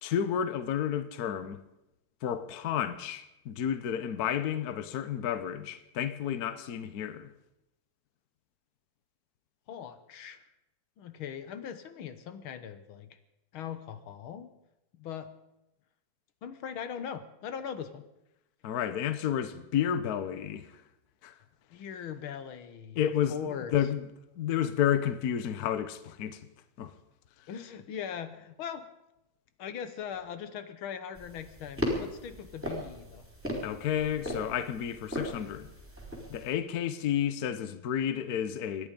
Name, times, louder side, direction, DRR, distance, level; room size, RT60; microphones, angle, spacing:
voice 1, 0.0-1.6 2.2-7.3 18.6-20.7 21.2-21.3 23.0-24.0 24.4-26.4 26.8-26.9 33.6-35.7 36.3-38.9, left 9 dB, 55° left, 1.2 m, -31 dB
voice 2, 9.7-10.4 11.0-13.1 13.5-14.5 14.9-15.3 16.4-18.0 21.7-23.0 23.3-23.7 27.5-28.9 29.6-33.3, left 8 dB, 80° left, 1.9 m, -40 dB
sound 1, 31.1-36.5, left 1 dB, 5° right, 4.1 m, -37 dB
26.0 x 10.5 x 5.2 m
omnidirectional pair, 2.2 m